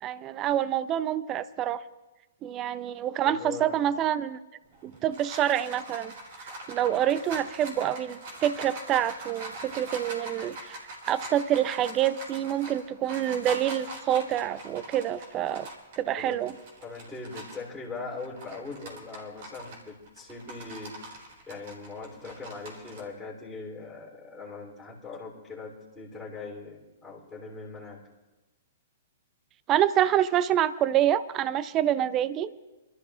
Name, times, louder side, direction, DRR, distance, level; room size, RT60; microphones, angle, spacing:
voice 1, 0.0-1.8 2.4-4.4 4.8-6.1 6.7-10.8 11.1-15.7 16.0-16.5 29.7-32.5, right 11 dB, 30° right, 16 dB, 0.5 m, -27 dB
voice 2, 3.2-3.9 16.2-16.4 16.8-21.2 21.5-28.0, left 4 dB, 5° left, -8 dB, 3.2 m, -41 dB
sound 1, 4.7-17.7 18.1-23.0, right 1 dB, 55° right, 3.7 m, -42 dB
29.0 x 13.0 x 2.5 m, 1.1 s
hypercardioid pair, 120°, 0 cm